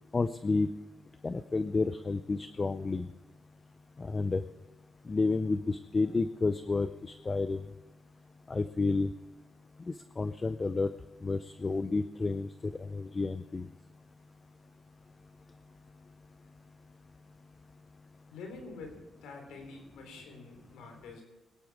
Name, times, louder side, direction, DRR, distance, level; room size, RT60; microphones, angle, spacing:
voice 1, 0.1-0.7 1.2-3.1 4.0-4.4 5.1-7.7 8.5-9.1 9.9-10.9 11.2-13.7, left 3 dB, 30° left, 13 dB, 0.6 m, -30 dB
voice 2, 18.3-21.2, left 3 dB, 85° left, 3 dB, 3.3 m, -47 dB
22.0 x 11.0 x 4.7 m, 1.2 s
cardioid pair, 90°, 0 cm